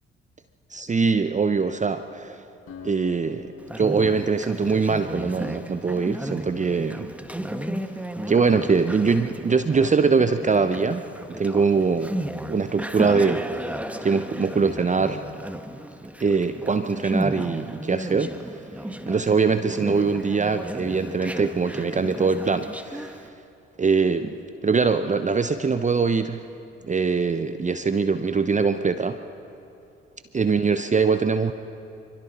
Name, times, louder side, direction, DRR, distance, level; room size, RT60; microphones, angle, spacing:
voice 1, 0.7-2.4 2.8-7.1 8.3-12.1 12.5-13.7 14.0-15.2 16.2-18.6 19.1-23.3 23.8-26.4 26.8-29.2 30.3-31.5, right 5 dB, 25° right, 10 dB, 0.8 m, -23 dB
Acoustic guitar, 2.7-6.2, left 7 dB, 50° left, 6.9 m, -47 dB
Conversation, 3.6-23.3, right 1 dB, 5° right, 1.4 m, -34 dB
26.5 x 24.5 x 4.3 m, 2.7 s
hypercardioid pair, 50°, 29 cm